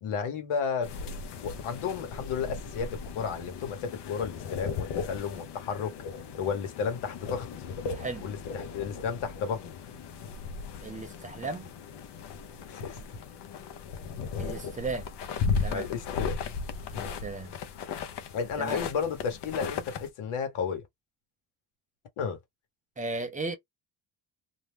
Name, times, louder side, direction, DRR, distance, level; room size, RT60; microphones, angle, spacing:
voice 1, 0.0-1.1 1.4-6.0 6.3-7.5 8.2-9.7 12.7-13.2 15.7-16.4 16.9-17.1 18.3-20.8 22.2-22.4, left 6 dB, 85° left, 1.1 m, -33 dB
sound 1, 0.8-20.1, left 5 dB, 55° left, 0.6 m, -36 dB
voice 2, 7.9-8.3 10.8-11.7 14.4-15.1 15.6-15.9 16.9-17.5 18.6-18.8 23.0-23.6, right 3 dB, 20° right, 0.3 m, -35 dB
2.5 x 2.1 x 3.1 m
cardioid pair, 180°, 49 cm